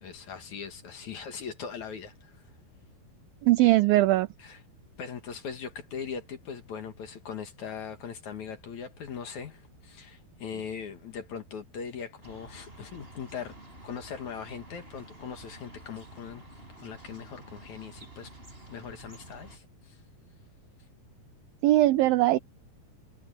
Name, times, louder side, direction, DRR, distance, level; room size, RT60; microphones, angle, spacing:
voice 1, 0.0-2.4 4.4-4.6 5.0-13.6 13.8-16.4 16.8-18.3 18.7-20.0, left 6 dB, 55° left, 2.8 m, -40 dB
voice 2, 3.4-4.3 21.6-22.4, right 16 dB, 85° right, 2.1 m, -20 dB
sound 1, 12.2-19.6, right 1 dB, 15° right, 6.3 m, -50 dB
omnidirectional pair, 4.7 m